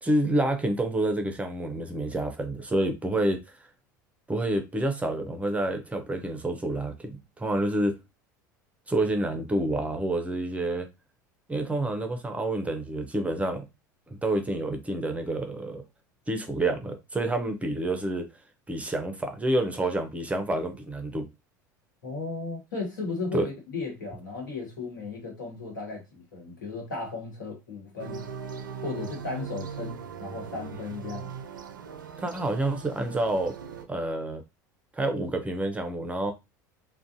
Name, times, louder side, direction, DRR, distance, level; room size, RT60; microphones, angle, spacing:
voice 1, 0.0-3.7 4.3-8.0 8.9-10.9 11.5-13.6 14.1-15.8 16.3-18.3 18.7-21.3 23.3-23.5 32.2-33.6 33.9-34.4 34.9-36.3, right 1 dB, 15° right, 0.5 m, -28 dB
voice 2, 22.0-28.3 28.8-31.3, left 3 dB, 80° left, 1.2 m, -35 dB
sound 1, 28.0-33.8, right 6 dB, 90° right, 0.4 m, -39 dB
2.4 x 2.1 x 2.6 m
hypercardioid pair, 80°, 10 cm